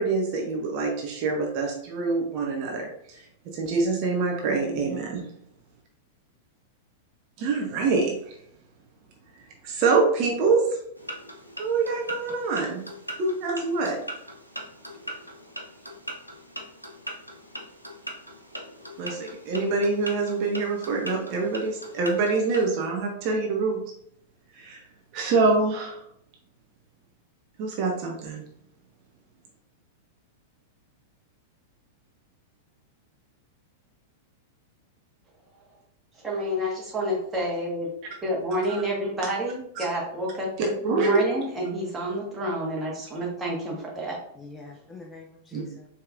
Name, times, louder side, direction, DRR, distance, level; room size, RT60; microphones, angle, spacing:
voice 1, 0.0-5.2 7.4-8.4 9.6-10.8 11.6-12.8 13.2-14.0 19.0-23.8 24.5-24.8 25.1-26.0 27.6-28.4 39.8-39.9 40.8-41.2 45.5-45.6, right 3 dB, 40° right, 0 dB, 0.7 m, -25 dB
voice 2, 4.6-5.1 12.3-12.4 44.4-45.9, left 4 dB, 15° left, 0 dB, 0.5 m, -44 dB
sound 1, 11.0-22.7, equal, 90° left, 0.6 m, -40 dB
voice 3, 36.2-44.2, equal, 15° right, -3 dB, 1.4 m, -29 dB
4.6 x 3.0 x 2.5 m, 0.69 s
figure-of-eight pair, 95°, 0 cm